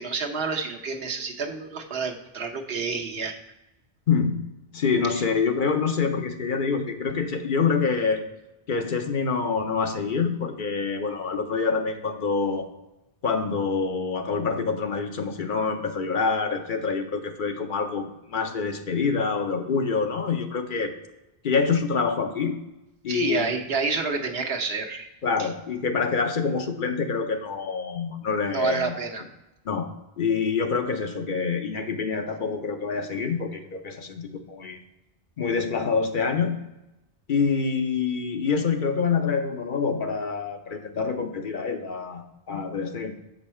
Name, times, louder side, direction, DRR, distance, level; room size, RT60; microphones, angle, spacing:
voice 1, 0.0-3.4 5.1-5.2 23.1-25.1 25.4-25.5 28.5-29.2, right 4 dB, 75° right, 3 dB, 1.1 m, -29 dB
voice 2, 4.1-4.5 4.7-8.2 8.7-12.7 13.2-20.9 21.4-22.6 23.0-23.5 25.2-28.9 29.7-29.9 30.2-34.8 35.4-36.6 37.3-43.1, left 5 dB, 55° left, 6 dB, 0.8 m, -26 dB
7.1 x 5.4 x 4.3 m, 0.95 s
omnidirectional pair, 1.0 m